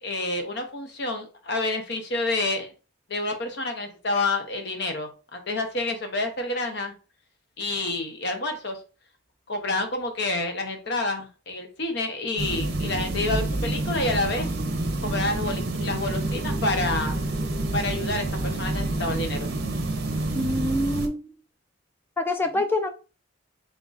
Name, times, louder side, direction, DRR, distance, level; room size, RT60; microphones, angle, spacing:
voice 1, 0.0-2.7 3.1-6.9 7.6-8.8 9.5-14.5 15.0-17.2 17.7-19.5 22.5-22.6, left 2 dB, 60° left, 5 dB, 0.8 m, -28 dB
sound 1, 12.4-21.1, right 2 dB, 55° right, 0.7 m, -28 dB
voice 2, 20.3-21.3 22.2-22.9, left 1 dB, 10° left, 6 dB, 0.4 m, -25 dB
3.9 x 3.7 x 2.4 m, 0.34 s
head